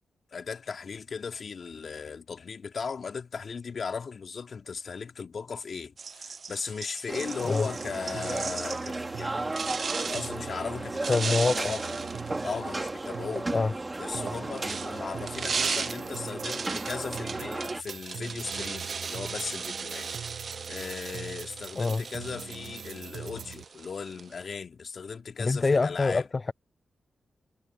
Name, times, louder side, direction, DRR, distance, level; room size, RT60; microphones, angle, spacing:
voice 1, 0.3-9.6 9.9-12.0 12.4-13.5 14.0-20.1 20.4-26.3, left 5 dB, 60° left, 2.7 m, -37 dB
sound 1, 6.0-9.0 9.5-10.4 11.0-13.1 14.1-24.5, right 5 dB, 55° right, 0.5 m, -37 dB
sound 2, 7.1-17.8, right 2 dB, 30° right, 3.0 m, -35 dB
sound 3, 7.6-23.6, right 8 dB, 75° right, 0.9 m, -44 dB
voice 2, 11.1-11.5 13.5-13.7 21.8-22.0 25.4-26.5, left 3 dB, 40° left, 0.3 m, -25 dB
supercardioid pair, 40°, 0 cm